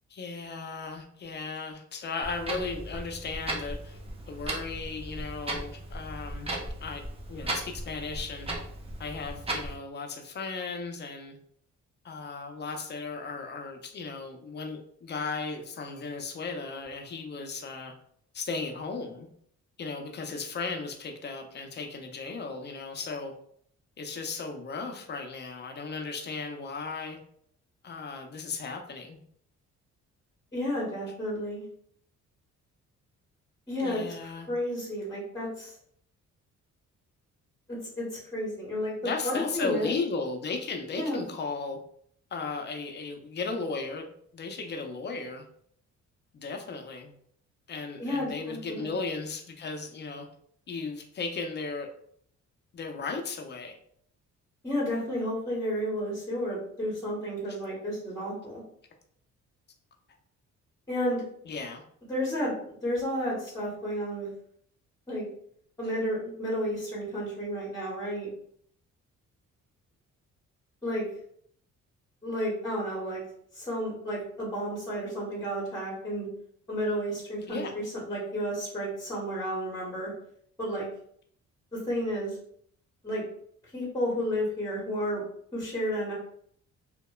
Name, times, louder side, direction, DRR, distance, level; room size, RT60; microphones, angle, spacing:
voice 1, 0.1-4.0 4.3-6.5 6.8-7.0 7.3-8.5 9.0-11.4 12.0-17.9 18.3-19.3 19.8-23.3 24.0-27.2 27.8-29.2 31.1-31.2 33.8-34.5 39.0-41.8 42.3-45.4 46.3-47.1 47.7-50.3 50.7-51.9 52.7-53.7 61.4-61.8 65.8-65.9 77.5-77.7, left 4 dB, 35° left, 4 dB, 0.4 m, -36 dB
Clock, 2.2-9.8, right 1 dB, 20° right, 0.5 m, -37 dB
voice 2, 30.5-31.7 33.7-35.7 37.7-38.9 39.2-40.0 40.9-41.2 48.0-48.9 54.6-58.6 60.9-61.2 62.1-64.3 65.1-65.2 65.8-68.3 70.8-71.0 72.2-73.2 73.5-76.3 76.7-80.1 80.6-80.9 81.7-82.4 83.0-83.2 83.7-85.2 85.5-86.1, equal, 10° left, -5 dB, 0.8 m, -32 dB
2.9 x 2.1 x 2.2 m, 0.66 s
cardioid pair, 100°, 30 cm